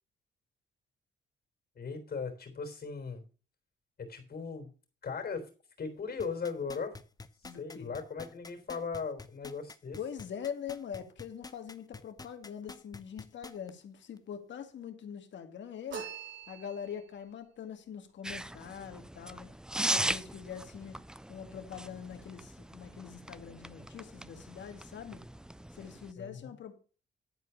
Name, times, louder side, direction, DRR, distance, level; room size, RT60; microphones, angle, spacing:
voice 1, 1.8-3.2 4.0-4.7 5.0-5.5 5.8-7.0 7.4-10.0 26.2-26.5, left 5 dB, 50° left, 3.7 m, -38 dB
sound 1, 6.2-13.7 14.2-14.3, left 3 dB, 20° left, 0.9 m, -47 dB
voice 2, 7.4-7.9 10.0-16.1 16.5-19.5 19.9-21.0 21.3-25.2 25.7-26.8, left 8 dB, 70° left, 2.0 m, -43 dB
sound 2, 15.9-17.2, right 6 dB, 70° right, 6.7 m, -43 dB
sound 3, 18.2-26.1, right 1 dB, 5° right, 0.4 m, -39 dB
11.5 x 4.6 x 7.0 m
cardioid pair, 85°, 20 cm